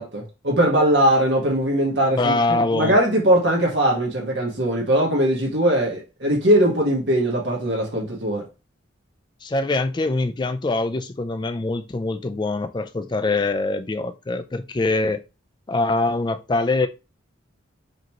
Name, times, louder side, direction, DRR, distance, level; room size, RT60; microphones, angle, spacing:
voice 1, 0.0-8.5, right 1 dB, 60° right, 1.4 m, -20 dB
voice 2, 2.1-3.0 9.4-15.2 15.7-16.9, left 2 dB, 20° left, 0.3 m, -23 dB
5.2 x 3.0 x 2.9 m
head